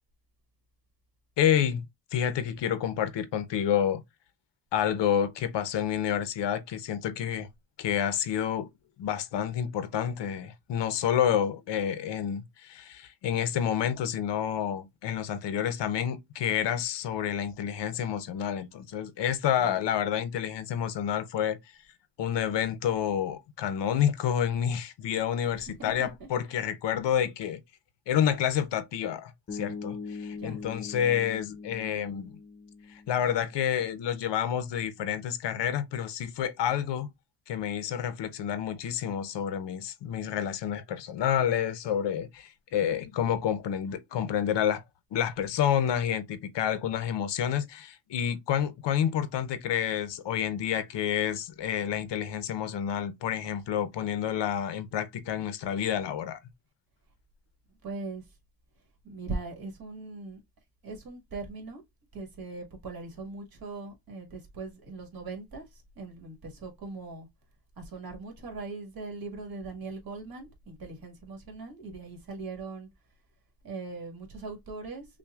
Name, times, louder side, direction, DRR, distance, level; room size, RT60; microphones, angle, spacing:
voice 1, 1.4-1.8 2.1-4.0 4.7-7.5 7.8-8.7 9.0-21.6 22.2-27.6 28.1-32.4 32.9-37.1 37.5-44.8 45.1-56.4, left 9 dB, 85° left, 0.7 m, -29 dB
voice 2, 25.4-26.1 30.3-30.6 57.8-58.2 59.0-60.4 60.8-61.8 62.1-67.3 67.8-72.9 73.6-75.1, right 3 dB, 60° right, 1.7 m, -40 dB
Bass guitar, 29.5-33.6, left 4 dB, 35° left, 0.7 m, -41 dB
5.8 x 2.2 x 2.3 m
wide cardioid pair, 140°, 41 cm